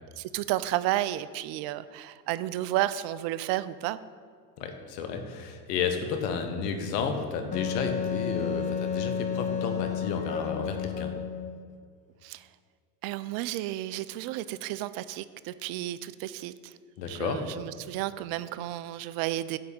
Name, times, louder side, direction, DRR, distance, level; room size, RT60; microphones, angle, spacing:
voice 1, 0.2-4.0 12.2-12.5 13.0-16.7 17.1-19.6, right 14 dB, 50° right, 15 dB, 0.5 m, -32 dB
voice 2, 4.6-11.1 17.0-17.4, left 5 dB, 80° left, 6 dB, 1.2 m, -32 dB
Wind instrument woodwind instrument, 7.5-11.6, left 8 dB, 20° left, 0.3 m, -31 dB
9.1 x 3.4 x 6.7 m, 2.1 s
supercardioid pair, 100°, 48 cm